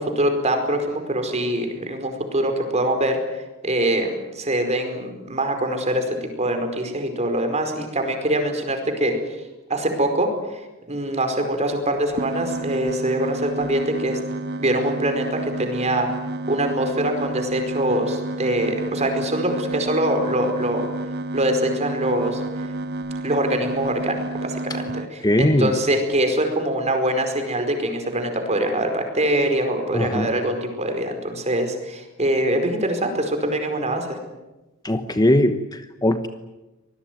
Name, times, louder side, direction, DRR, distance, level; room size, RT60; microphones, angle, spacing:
voice 1, 0.0-3.2 3.6-6.1 6.4-9.2 9.7-10.3 10.9-14.2 14.6-16.1 16.5-20.9 21.3-22.4 23.2-34.2, right 1 dB, 35° right, 5 dB, 4.8 m, -23 dB
sound 1, 12.2-25.1, right 2 dB, 50° right, 1.4 m, -30 dB
voice 2, 25.2-25.7 29.9-30.3 34.8-36.3, left 1 dB, 20° left, 9 dB, 1.1 m, -20 dB
25.5 x 20.0 x 9.4 m, 1.0 s
head